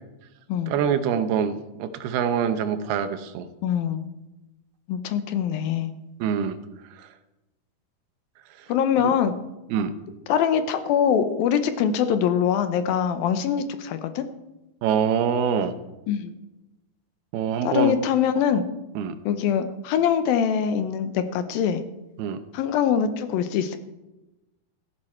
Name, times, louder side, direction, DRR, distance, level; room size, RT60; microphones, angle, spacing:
voice 1, 0.7-3.5 6.2-6.6 9.7-9.9 14.8-15.7 17.3-18.0 19.0-19.2 22.2-22.4, right 7 dB, 90° right, 10 dB, 2.9 m, -24 dB
voice 2, 3.6-4.1 4.9-5.9 8.7-9.3 10.3-14.2 16.1-16.3 17.6-18.6 19.3-21.8 22.5-23.8, left 8 dB, 75° left, 10 dB, 2.6 m, -23 dB
16.0 x 14.5 x 4.4 m, 1.0 s
omnidirectional pair, 4.4 m